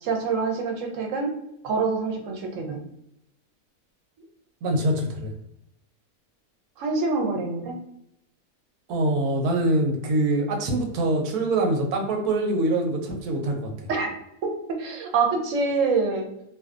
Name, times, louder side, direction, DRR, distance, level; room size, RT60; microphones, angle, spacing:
voice 1, 0.0-1.3 1.6-2.8 6.8-7.8 13.9-14.1 14.4-16.3, right 4 dB, 70° right, 2 dB, 0.9 m, -26 dB
voice 2, 4.6-5.3 8.9-13.7, right 1 dB, 90° right, 2 dB, 1.1 m, -24 dB
2.6 x 2.2 x 2.3 m, 0.78 s
omnidirectional pair, 1.6 m